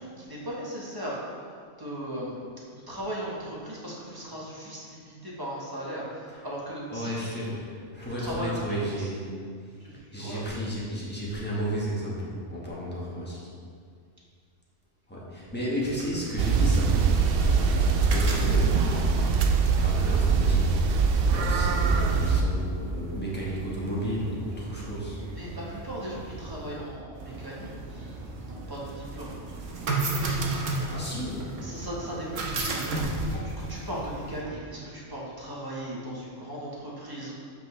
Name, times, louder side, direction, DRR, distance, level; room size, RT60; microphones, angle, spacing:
voice 1, 0.0-2.4 2.7-7.4 8.1-9.1 9.8-10.4 25.3-29.4 31.6-37.3, right 1 dB, 20° right, -5 dB, 1.2 m, -37 dB
voice 2, 6.9-9.8 10.1-13.5 15.1-19.3 19.8-25.2 30.9-31.5, equal, 10° left, -6 dB, 1.3 m, -33 dB
sound 1, 15.8-34.4, right 2 dB, 85° right, 1.2 m, -35 dB
sound 2, 16.4-22.4, right 5 dB, 60° right, 0.6 m, -23 dB
7.7 x 5.2 x 3.3 m, 2.1 s
omnidirectional pair, 1.3 m